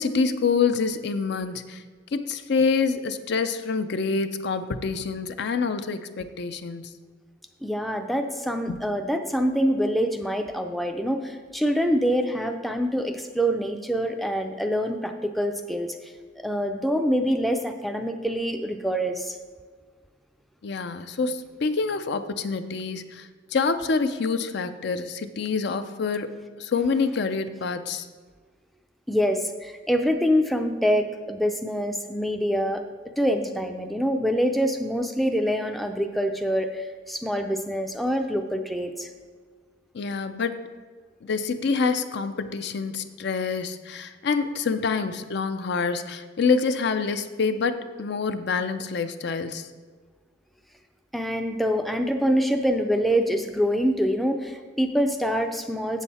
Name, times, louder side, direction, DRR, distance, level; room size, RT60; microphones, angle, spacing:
voice 1, 0.0-1.8 2.1-6.9 8.7-8.8 20.6-28.1 39.9-40.6 41.2-49.7, left 4 dB, 60° left, 10 dB, 0.5 m, -26 dB
voice 2, 7.6-16.1 16.4-19.4 29.1-32.8 33.2-39.1 51.1-56.0, equal, ahead, 5 dB, 0.4 m, -25 dB
7.8 x 7.3 x 4.2 m, 1.5 s
head